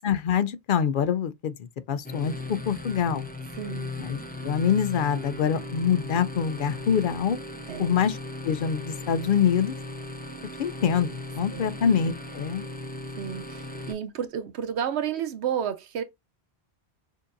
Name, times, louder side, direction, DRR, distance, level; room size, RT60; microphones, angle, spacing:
voice 1, 0.0-1.5 1.9-3.3 4.0-7.4 7.8-8.2 8.4-9.7 10.6-12.7, left 7 dB, 60° left, 0.6 m, -25 dB
sound 1, 2.0-13.9, left 2 dB, 10° left, 0.5 m, -37 dB
voice 2, 3.6-3.9 7.7-7.9 11.5-11.8 13.2-16.0, right 8 dB, 80° right, 0.9 m, -31 dB
6.4 x 2.7 x 2.5 m
omnidirectional pair, 1.1 m